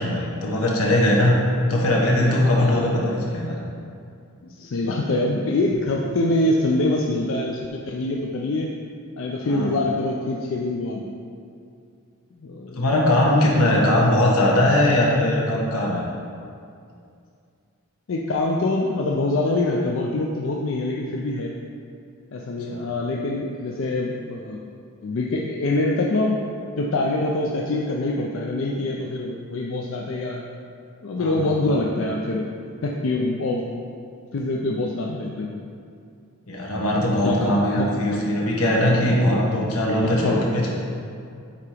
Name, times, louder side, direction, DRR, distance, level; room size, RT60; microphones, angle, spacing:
voice 1, 0.0-1.3 1.7-3.5 9.5-9.7 12.7-16.0 22.7-22.8 31.2-31.5 36.5-40.7, left 1 dB, 85° left, -3 dB, 1.2 m, -20 dB
voice 2, 4.4-8.7 9.2-11.1 12.4-12.8 13.5-13.7 14.0-14.1 18.1-21.5 22.3-24.6 25.0-26.4 26.8-30.4 31.0-32.5 32.8-33.6 34.3-35.6 37.1-37.9 40.0-40.4, left 2 dB, 60° left, -1 dB, 0.4 m, -25 dB
8.3 x 2.9 x 4.9 m, 2.4 s
head